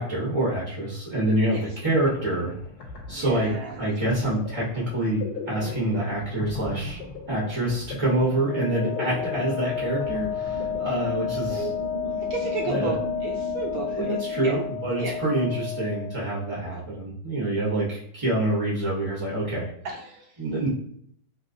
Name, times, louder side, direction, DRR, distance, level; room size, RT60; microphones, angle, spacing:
voice 1, 0.0-2.5 3.1-3.5 3.8-7.0 7.3-11.7 12.7-12.9 13.9-19.7 20.4-20.7, right 1 dB, 35° right, -6 dB, 0.4 m, -26 dB
sound 1, 1.9-12.5, left 4 dB, 70° left, 1.2 m, -39 dB
voice 2, 3.1-3.9 11.5-11.7 12.0-13.0 13.2-14.6 15.0-15.1 16.6-16.7 19.8-20.3, right 4 dB, 70° right, -1 dB, 0.9 m, -33 dB
Wind instrument woodwind instrument, 8.4-16.2, left 8 dB, 85° left, 0.5 m, -31 dB
sound 2, 10.5-15.4, right 1 dB, 45° left, 1.2 m, -38 dB
3.0 x 2.8 x 2.6 m, 0.66 s
omnidirectional pair, 1.9 m